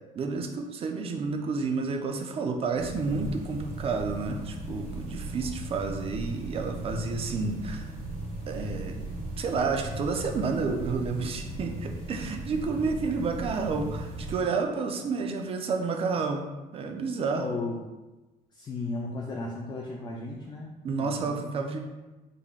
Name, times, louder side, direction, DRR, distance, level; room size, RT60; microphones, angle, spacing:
voice 1, 0.1-7.9 8.5-9.0 9.4-17.6 20.5-20.6 20.8-21.8, right 4 dB, 40° right, 4 dB, 0.4 m, -30 dB
sound 1, 2.7-14.4, right 2 dB, 70° right, 1.2 m, -37 dB
voice 2, 17.4-17.8 18.5-21.5, left 3 dB, 30° left, -2 dB, 0.4 m, -35 dB
3.8 x 3.4 x 2.3 m, 1.1 s
cardioid pair, 120°, 15 cm